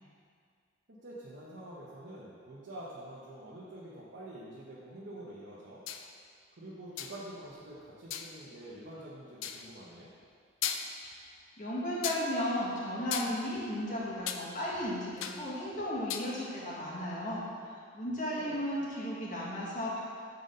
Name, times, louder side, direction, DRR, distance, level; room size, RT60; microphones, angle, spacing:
voice 1, 0.9-5.8 6.5-10.1 18.3-18.9, right 1 dB, 60° right, -8 dB, 0.9 m, -47 dB
sound 1, 5.9-6.1 7.0-7.3 8.1-8.3 9.4-9.7 10.2-10.3 10.6-11.1 12.0-12.3 13.1-14.4 14.7-15.5 15.8-16.3, left 8 dB, 85° left, 0.4 m, -37 dB
voice 2, 11.6-20.0, equal, 40° left, -6 dB, 1.6 m, -35 dB
7.1 x 3.9 x 5.3 m, 2.2 s
head